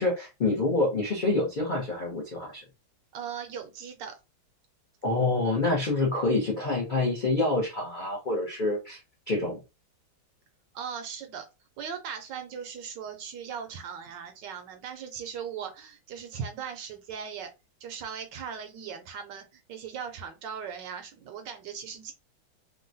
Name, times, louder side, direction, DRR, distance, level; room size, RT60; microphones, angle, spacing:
voice 1, 0.0-2.6 5.0-9.0 9.3-9.6, left 2 dB, 60° left, -3 dB, 0.5 m, -27 dB
voice 2, 3.1-4.2 10.7-11.5 11.8-17.5 17.8-22.1, right 7 dB, 75° right, 6 dB, 1.1 m, -38 dB
3.6 x 2.2 x 2.6 m, 0.26 s
omnidirectional pair, 2.2 m